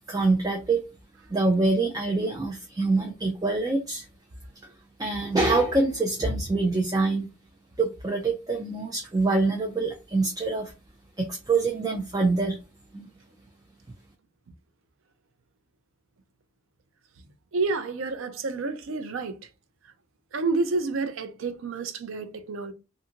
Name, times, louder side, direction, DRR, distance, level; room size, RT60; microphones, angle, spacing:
voice 1, 0.1-0.8 1.3-4.1 4.6-4.7 5.0-7.3 7.8-10.7 11.2-12.6 12.9-13.1, right 3 dB, 20° right, 0.3 m, -25 dB
voice 2, 17.5-19.4 20.3-22.7, right 3 dB, 75° right, 0.5 m, -29 dB
2.6 x 2.5 x 2.8 m
head